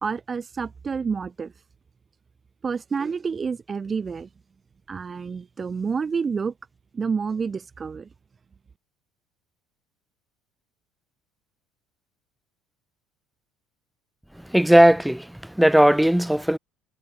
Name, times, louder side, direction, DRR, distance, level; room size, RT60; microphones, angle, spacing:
voice 1, 0.0-1.5 2.6-4.3 4.9-6.5 6.9-8.1, right 5 dB, 20° right, 1.3 m, -28 dB
voice 2, 14.3-16.6, equal, ahead, 1.9 m, -18 dB
cardioid pair, 165°, 0 cm